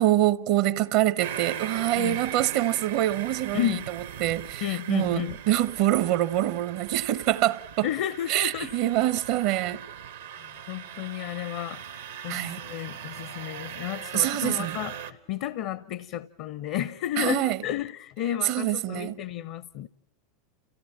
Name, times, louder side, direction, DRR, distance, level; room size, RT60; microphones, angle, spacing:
voice 1, 0.0-3.7 4.2-7.9 8.3-9.8 12.3-12.6 14.1-14.8 17.2-17.6 18.4-19.2, right 14 dB, 55° right, 0.9 m, -25 dB
sound 1, 1.2-15.1, right 9 dB, 75° right, 1.3 m, -39 dB
voice 2, 3.5-3.8 4.6-5.4 7.8-8.7 10.4-19.9, left 11 dB, 55° left, 0.7 m, -32 dB
29.5 x 16.0 x 7.3 m
figure-of-eight pair, 85°, 0 cm